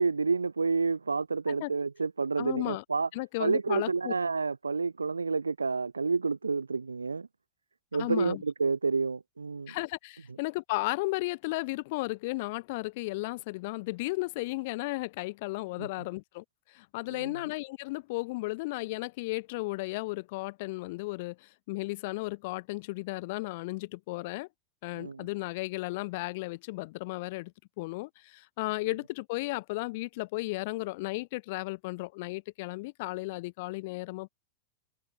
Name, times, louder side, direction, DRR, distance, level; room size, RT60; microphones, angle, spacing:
voice 1, 0.0-3.1 3.4-7.3 7.9-9.8 15.8-15.9 17.1-17.3 24.9-25.3 28.8-28.9, right 4 dB, 75° right, 0.5 m, -29 dB
voice 2, 2.4-2.8 3.1-4.1 7.9-8.4 9.7-24.5 24.8-34.3, left 23 dB, 50° left, 0.9 m, -34 dB
figure-of-eight pair, 90°, 0 cm